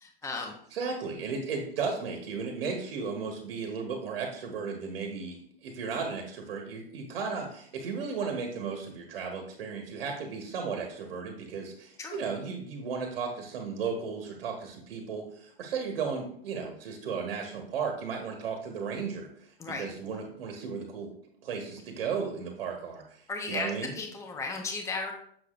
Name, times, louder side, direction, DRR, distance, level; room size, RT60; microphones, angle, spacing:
voice 1, 0.0-0.5 12.0-12.2 19.6-19.9 23.3-25.1, left 3 dB, 10° left, 1 dB, 0.9 m, -35 dB
voice 2, 0.7-21.1 21.4-23.2 23.5-23.9, right 5 dB, 70° right, 2 dB, 1.4 m, -35 dB
6.9 x 6.5 x 2.5 m, 0.64 s
hypercardioid pair, 120°, 30 cm